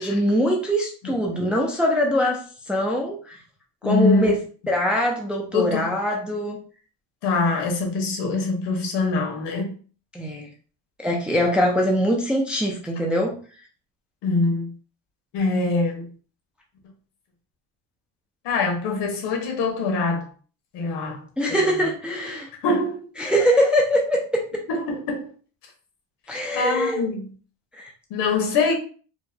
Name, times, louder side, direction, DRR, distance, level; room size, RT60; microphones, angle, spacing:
voice 1, 0.0-2.4 2.7-3.4 3.8-4.4 4.7-6.6 10.1-10.5 11.0-13.3 21.4-22.5 23.2-24.4 26.3-27.0 27.8-27.9, equal, 5° right, 0.3 m, -22 dB
voice 2, 3.8-4.3 5.5-5.9 7.2-9.7 14.2-14.7 15.3-16.1 18.4-20.3 20.7-21.9 22.6-23.3 24.7-25.3 26.5-27.3 28.1-28.7, left 3 dB, 80° left, 1.2 m, -24 dB
4.6 x 2.2 x 2.7 m
cardioid pair, 170°, 41 cm